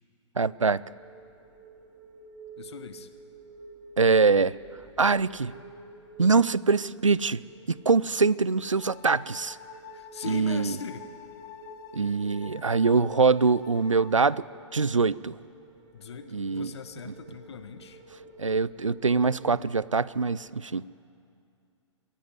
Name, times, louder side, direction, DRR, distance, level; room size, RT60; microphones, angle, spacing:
voice 1, 0.4-0.8 4.0-4.5 5.0-5.5 6.2-7.4 7.7-9.6 10.3-10.7 11.9-14.4 14.7-15.4 16.3-16.7 18.4-20.8, right 4 dB, 90° right, 20 dB, 0.5 m, -23 dB
sound 1, 0.6-20.5, right 3 dB, 35° right, 3.7 m, -51 dB
voice 2, 2.6-3.1 9.9-11.1 15.9-18.0, left 7 dB, 60° left, 10 dB, 1.5 m, -40 dB
sound 2, 8.8-14.4, left 10 dB, 35° left, 1.4 m, -47 dB
23.0 x 16.0 x 9.6 m, 2.4 s
figure-of-eight pair, 120°, 16 cm